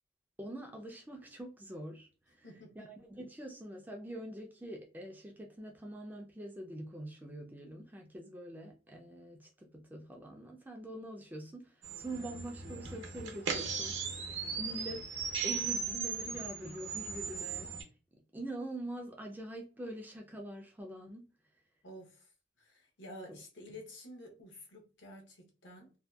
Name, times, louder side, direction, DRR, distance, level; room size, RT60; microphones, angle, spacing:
voice 1, 0.4-2.5 2.7-15.1 15.4-17.7 18.3-21.3 23.3-23.4, right 1 dB, 10° right, 0.3 m, -44 dB
voice 2, 2.4-2.9 21.8-22.3 22.6-25.9, left 1 dB, 65° left, 0.7 m, -51 dB
sound 1, 11.8-17.8, right 5 dB, 75° right, 0.6 m, -38 dB
2.6 x 2.2 x 2.2 m
head